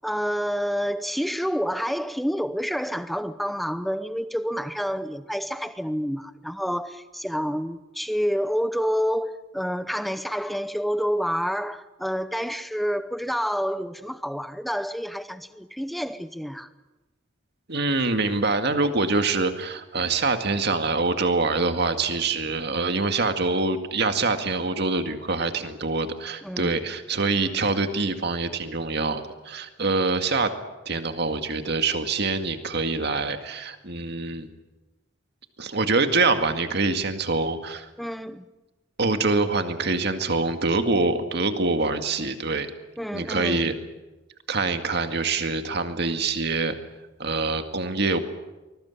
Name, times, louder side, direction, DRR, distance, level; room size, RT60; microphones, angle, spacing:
voice 1, 0.0-16.7 26.4-26.8 38.0-38.5 43.0-43.8, equal, ahead, 0.8 m, -28 dB
voice 2, 17.7-30.5 30.9-34.5 35.6-37.9 39.0-42.7 43.1-43.7 44.5-46.8 47.2-48.2, right 3 dB, 55° right, 2.0 m, -25 dB
24.5 x 21.0 x 8.5 m
head